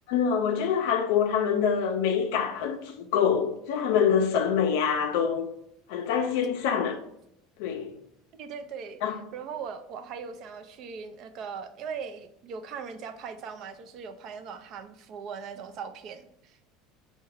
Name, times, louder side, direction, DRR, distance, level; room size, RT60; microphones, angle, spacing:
voice 1, 0.1-5.5 5.9-7.0 7.6-8.0 9.0-9.2, left 7 dB, 75° left, 0.4 m, -25 dB
voice 2, 8.3-16.6, right 6 dB, 50° right, 0.5 m, -40 dB
4.6 x 2.2 x 4.6 m
supercardioid pair, 130°, 0 cm